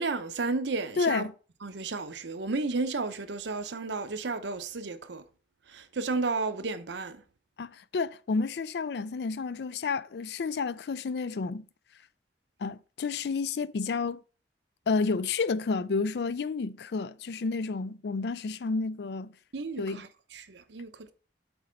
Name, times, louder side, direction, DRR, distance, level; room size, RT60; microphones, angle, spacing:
voice 1, 0.0-1.3 1.6-5.2 5.7-7.2 19.5-21.1, right 3 dB, 85° right, 0.8 m, -33 dB
voice 2, 1.0-1.3 7.6-11.6 12.6-14.2 14.9-19.3 19.8-20.0, left 4 dB, 65° left, 0.4 m, -30 dB
8.0 x 4.2 x 5.0 m
head